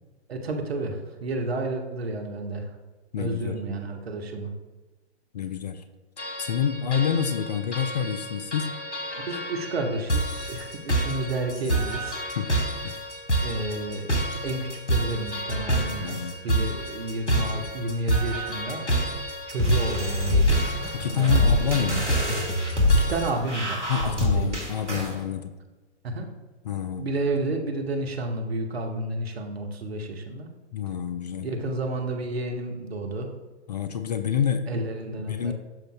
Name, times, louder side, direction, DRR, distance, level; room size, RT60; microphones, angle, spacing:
voice 1, 0.3-2.7 3.2-4.5 9.2-12.3 13.4-18.8 19.5-20.6 21.1-22.2 22.9-24.5 26.0-26.3 27.0-30.5 31.4-33.3 34.7-35.5, right 2 dB, 60° right, 3 dB, 1.2 m, -31 dB
voice 2, 3.1-3.6 5.3-5.8 6.2-8.8 12.3-12.5 12.8-13.0 16.0-16.7 20.9-22.1 23.9-25.5 26.6-27.1 30.7-31.5 33.7-34.9 35.2-35.5, left 8 dB, 40° left, 9 dB, 0.4 m, -28 dB
sound 1, 6.2-23.3, right 1 dB, 80° left, 1.5 m, -29 dB
sound 2, 19.6-25.2, left 2 dB, 85° right, 2.1 m, -25 dB
12.5 x 5.2 x 2.2 m, 1.2 s
figure-of-eight pair, 120°, 35 cm